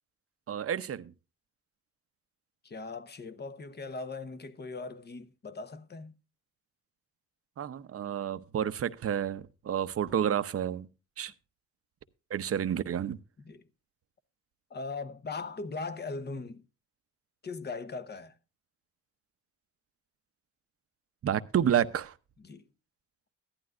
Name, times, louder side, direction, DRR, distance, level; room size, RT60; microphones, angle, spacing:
voice 1, 0.5-1.1 7.6-10.9 11.2-11.3 12.3-13.2 21.2-22.1, right 9 dB, 50° right, 0.8 m, -30 dB
voice 2, 2.6-6.2 13.4-13.6 14.7-16.6 17.4-18.3 22.4-22.6, left 3 dB, 35° left, 1.1 m, -39 dB
15.0 x 11.5 x 2.5 m
cardioid pair, 90°, 30 cm